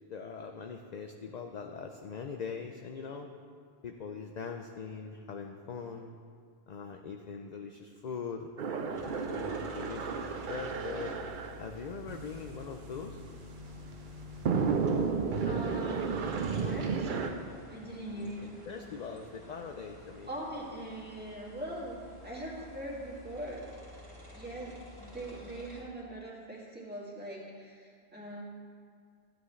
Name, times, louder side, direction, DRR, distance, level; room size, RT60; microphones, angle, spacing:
voice 1, 0.1-3.3 3.8-6.2 6.7-8.5 9.0-11.1 11.6-13.2 18.1-18.3 18.7-20.3, left 5 dB, 50° left, 4 dB, 0.6 m, -41 dB
sound 1, 8.6-17.3, right 5 dB, 55° right, 0.7 m, -34 dB
sound 2, 8.9-25.8, left 1 dB, 30° right, 2.1 m, -51 dB
voice 2, 15.4-17.4 17.7-18.5 20.3-23.7 24.3-28.4, right 1 dB, 10° right, -6 dB, 2.1 m, -41 dB
13.5 x 9.1 x 3.2 m, 2.2 s
omnidirectional pair, 1.1 m